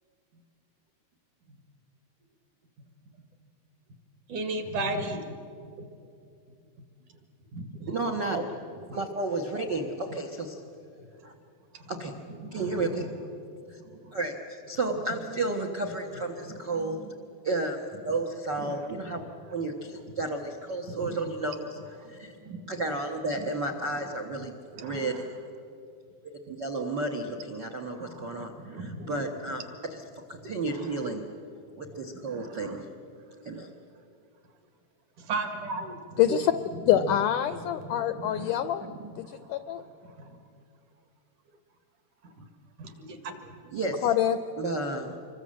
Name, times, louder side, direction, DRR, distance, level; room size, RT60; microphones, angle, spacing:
voice 1, 4.3-5.9 7.5-7.9 8.3-8.4 8.9-9.0 12.4-12.8 14.0-14.1 15.1-15.2 16.4-16.8 18.6-18.8 20.9-21.2 22.4-22.6 24.7-25.2 28.0-29.2 30.4-30.5 32.3-32.8 35.2-36.4 36.9-37.0 37.8-38.5 38.8-39.0 40.0-40.4 42.4-42.5 42.8-43.6, right 2 dB, 60° right, 7 dB, 3.3 m, -36 dB
voice 2, 7.9-8.4 8.9-10.6 11.2-11.3 11.9-12.1 12.5-13.1 13.7-13.8 14.1-17.0 17.4-21.8 22.1-22.3 22.7-24.5 24.8-25.3 26.2-30.0 30.3-31.3 31.8-32.8 33.4-33.7 43.7-44.1 44.6-45.1, right 2 dB, 75° right, 4 dB, 1.0 m, -32 dB
voice 3, 36.2-36.5 36.9-38.9 39.2-39.8 44.0-44.4, left 11 dB, 80° left, 11 dB, 1.9 m, -25 dB
26.5 x 22.5 x 7.7 m, 2.5 s
omnidirectional pair, 4.4 m